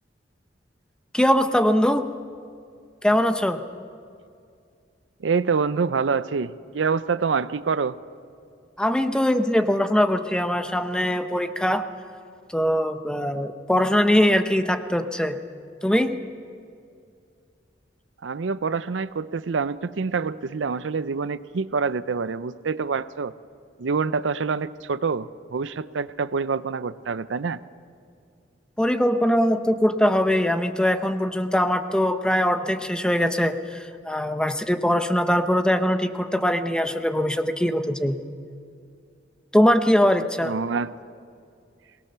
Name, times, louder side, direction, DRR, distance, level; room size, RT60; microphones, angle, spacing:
voice 1, 1.1-2.1 3.0-3.6 8.8-11.8 12.5-15.4 15.8-16.2 28.8-38.2 39.5-40.6, equal, 5° left, 9 dB, 0.8 m, -22 dB
voice 2, 5.2-8.0 18.2-23.3 23.8-27.6 40.4-40.9, right 5 dB, 80° right, 15 dB, 0.5 m, -26 dB
22.5 x 19.0 x 6.8 m, 2.4 s
head